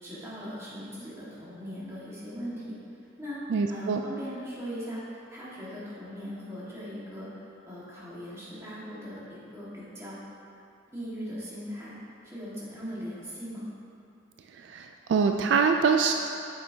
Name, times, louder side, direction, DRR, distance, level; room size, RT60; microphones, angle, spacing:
voice 1, 0.0-2.8 3.2-3.4 3.7-10.2 10.9-11.9 12.2-13.7, equal, 15° right, -9 dB, 1.7 m, -39 dB
voice 2, 3.5-4.0 14.6-16.1, right 5 dB, 65° right, 4 dB, 0.3 m, -24 dB
8.4 x 6.5 x 2.8 m, 2.7 s
head